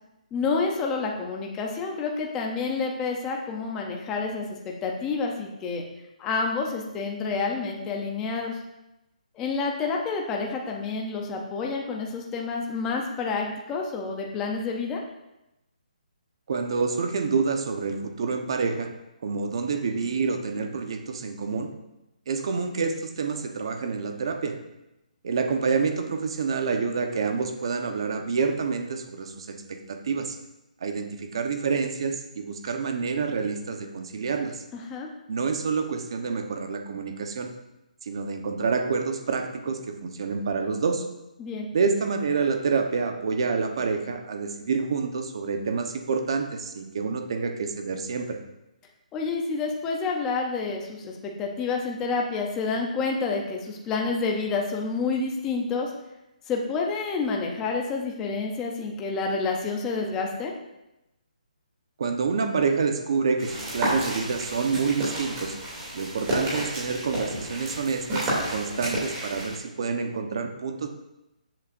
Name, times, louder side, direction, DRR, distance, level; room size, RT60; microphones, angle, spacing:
voice 1, 0.3-4.4 4.8-5.8 6.2-8.6 9.4-15.0 34.7-35.1 41.4-41.7 49.1-55.9 56.5-60.5, left 4 dB, 10° left, 0 dB, 0.7 m, -29 dB
voice 2, 16.5-18.9 19.2-21.7 22.3-24.6 25.2-30.4 30.8-34.6 35.3-37.5 38.0-41.0 41.7-48.4 62.0-65.6 65.9-70.9, right 5 dB, 40° right, 5 dB, 1.0 m, -28 dB
sound 1, 63.4-69.6, right 1 dB, 15° right, 2.7 m, -31 dB
13.5 x 7.9 x 2.6 m, 0.93 s
hypercardioid pair, 175°, 4 cm